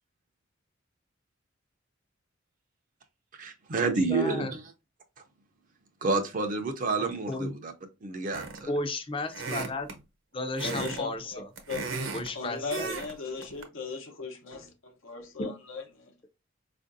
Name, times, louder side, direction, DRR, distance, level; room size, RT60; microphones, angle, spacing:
voice 1, 3.4-4.6 6.0-7.7 8.0-8.7, right 3 dB, 40° right, 0.4 m, -29 dB
voice 2, 4.1-4.5 7.3-7.5 8.7-9.9 10.3-11.5 12.1-13.0 15.4-15.5, left 2 dB, 25° left, 0.5 m, -33 dB
sound 1, 8.3-8.7 9.3-10.0 10.6-11.0 11.3-12.3 12.7-13.1 13.4-13.6, right 4 dB, 80° right, 0.8 m, -35 dB
voice 3, 10.6-11.4 11.7-11.8 12.3-16.1, left 4 dB, 85° left, 0.9 m, -38 dB
4.4 x 2.5 x 2.5 m
head